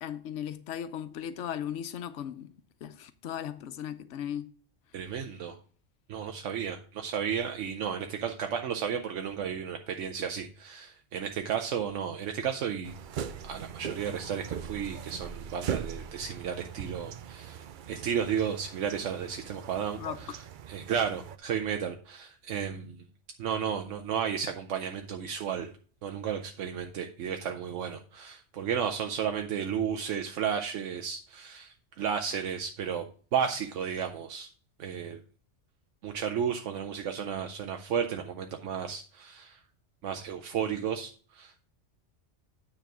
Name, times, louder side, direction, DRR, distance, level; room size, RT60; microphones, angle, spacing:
voice 1, 0.0-2.5 2.8-4.5 20.0-20.4, left 9 dB, 75° left, 1.0 m, -37 dB
voice 2, 4.9-5.6 6.1-12.9 13.4-23.1 23.4-25.7 26.0-33.1 33.3-34.5 34.8-35.2 36.0-39.6 40.0-41.6, right 8 dB, 85° right, 1.1 m, -33 dB
sound 1, 12.8-21.4, right 8 dB, 60° right, 0.5 m, -40 dB
9.2 x 3.6 x 5.9 m
omnidirectional pair, 1.2 m